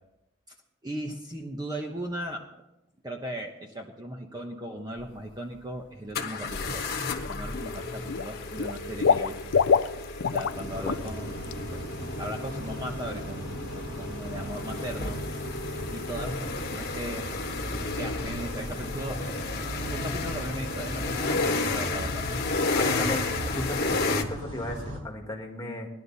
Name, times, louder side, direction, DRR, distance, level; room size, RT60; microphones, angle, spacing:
voice 1, 0.8-2.4 3.0-6.8 7.3-9.6 10.3-11.4 11.7-11.8 12.2-15.2 15.9-17.3 18.0-19.4 19.9-22.2, right 1 dB, 20° right, 2 dB, 1.0 m, -37 dB
sound 1, 5.0-5.1 6.1-24.2, left 3 dB, 45° left, 1.3 m, -32 dB
Water / Liquid, 6.4-6.7 7.1-7.8 8.1-10.6 10.9-11.1 11.4-11.5, left 6 dB, 60° left, 0.4 m, -25 dB
sound 2, 10.5-25.0, right 1 dB, 80° right, 4.3 m, -38 dB
voice 2, 22.7-25.9, left 1 dB, 15° left, 0 dB, 1.9 m, -35 dB
18.0 x 11.5 x 4.1 m, 0.87 s
head